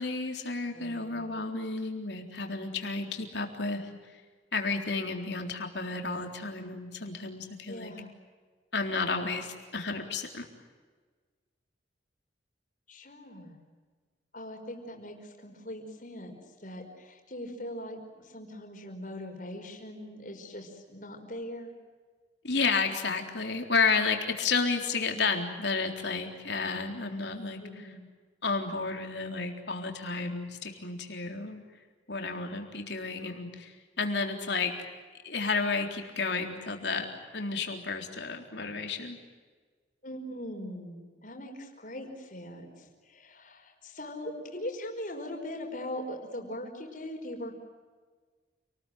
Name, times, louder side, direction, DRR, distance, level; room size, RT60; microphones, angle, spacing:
voice 1, 0.0-3.9 4.5-7.9 8.7-10.5 22.4-27.9 28.4-31.6 32.1-34.7 35.2-37.1 37.3-39.2, left 4 dB, 65° left, 3 dB, 3.8 m, -31 dB
voice 2, 0.7-1.2 7.7-8.1 12.9-13.6 14.3-16.3 16.6-21.7 27.6-28.1 40.0-47.5, left 1 dB, 45° left, 3 dB, 5.2 m, -41 dB
29.0 x 20.0 x 9.3 m, 1.5 s
head